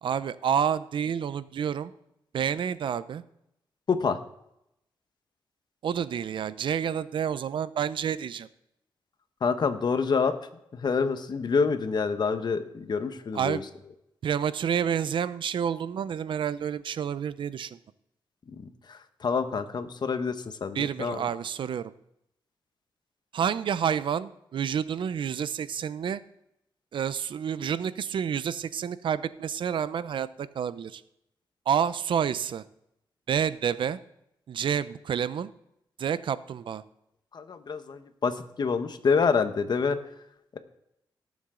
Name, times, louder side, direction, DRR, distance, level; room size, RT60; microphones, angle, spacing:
voice 1, 0.0-1.9 2.3-3.2 5.8-8.5 13.3-13.6 14.2-17.8 20.7-21.9 23.3-26.2 26.9-31.0 31.7-32.6 33.3-34.0 34.5-35.5 36.0-36.8, right 8 dB, 75° right, 15 dB, 0.6 m, -29 dB
voice 2, 3.9-4.2 9.4-10.4 10.7-13.6 19.2-20.4 20.6-21.2 37.3-40.0, left 5 dB, 55° left, 9 dB, 1.1 m, -27 dB
18.0 x 7.2 x 3.8 m, 0.80 s
cardioid pair, 80°, 9 cm